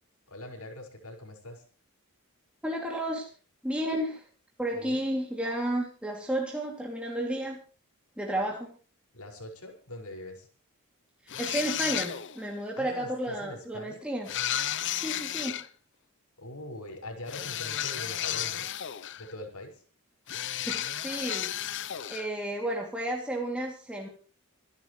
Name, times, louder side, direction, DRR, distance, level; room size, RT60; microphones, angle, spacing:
voice 1, 0.3-1.6 4.8-5.0 9.1-10.5 12.8-14.0 16.4-18.7 19.2-19.8, left 1 dB, 85° left, 3 dB, 5.8 m, -42 dB
voice 2, 2.6-3.3 3.6-4.2 4.6-7.6 8.2-8.7 11.4-14.3 15.0-15.6 20.7-21.5 22.1-24.1, right 1 dB, 5° right, -1 dB, 2.8 m, -32 dB
sound 1, 11.3-12.5 14.3-15.7 17.3-19.3 20.3-22.3, left 11 dB, 55° left, 0.8 m, -33 dB
27.5 x 11.5 x 3.3 m, 0.38 s
head